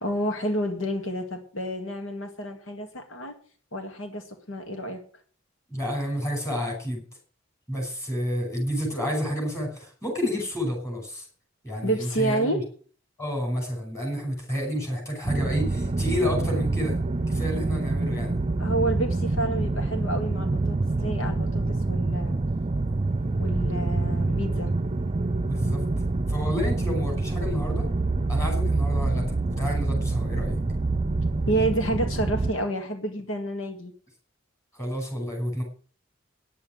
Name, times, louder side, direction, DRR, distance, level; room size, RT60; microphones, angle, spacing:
voice 1, 0.0-3.3 3.7-5.0 11.8-12.6 18.6-22.4 23.4-24.7 31.4-33.9, right 1 dB, 75° left, 5 dB, 2.0 m, -29 dB
voice 2, 5.7-7.0 7.7-11.3 11.6-12.6 13.2-17.0 17.3-18.4 25.4-25.8 26.3-27.9 28.3-30.6 34.7-35.6, equal, 15° left, 1 dB, 5.6 m, -30 dB
sound 1, 15.2-32.5, right 2 dB, 30° right, 0.7 m, -26 dB
10.5 x 8.5 x 8.9 m, 0.43 s
head